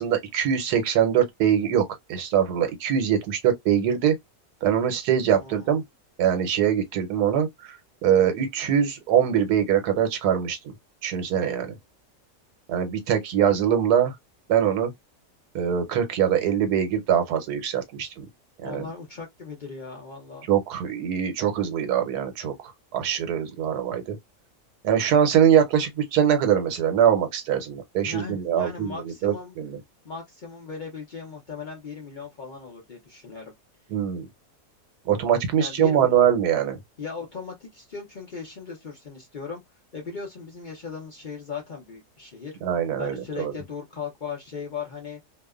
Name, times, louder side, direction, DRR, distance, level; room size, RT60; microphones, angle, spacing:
voice 1, 0.0-4.2 4.6-5.8 6.2-7.8 8.0-10.7 11.0-11.7 12.7-14.1 14.5-14.9 15.5-18.2 18.6-18.9 20.5-24.2 24.8-28.9 29.2-29.8 33.9-34.3 35.1-36.8 42.6-43.5, right 9 dB, 80° right, 1.2 m, -23 dB
voice 2, 5.3-5.7 18.6-20.5 28.0-29.5 30.0-33.5 35.6-36.1 37.0-39.6 39.9-42.6 43.0-45.2, left 5 dB, 55° left, 0.5 m, -37 dB
2.8 x 2.1 x 2.3 m
omnidirectional pair, 1.7 m